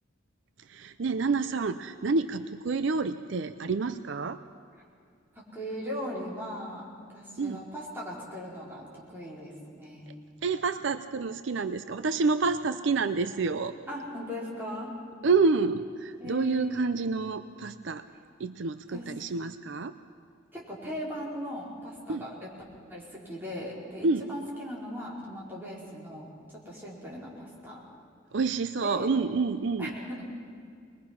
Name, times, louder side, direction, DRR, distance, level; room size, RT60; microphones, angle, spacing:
voice 1, 0.7-4.4 7.4-7.6 10.4-13.8 15.2-18.1 18.4-19.9 22.1-22.3 24.0-24.3 28.3-29.9, right 4 dB, 65° right, 11 dB, 0.5 m, -28 dB
voice 2, 5.3-10.1 13.9-14.9 16.2-16.7 18.9-19.0 20.5-22.3 22.9-27.8 28.8-29.1 29.8-30.2, equal, 10° right, -6 dB, 4.3 m, -39 dB
21.5 x 21.5 x 5.9 m, 2.2 s
head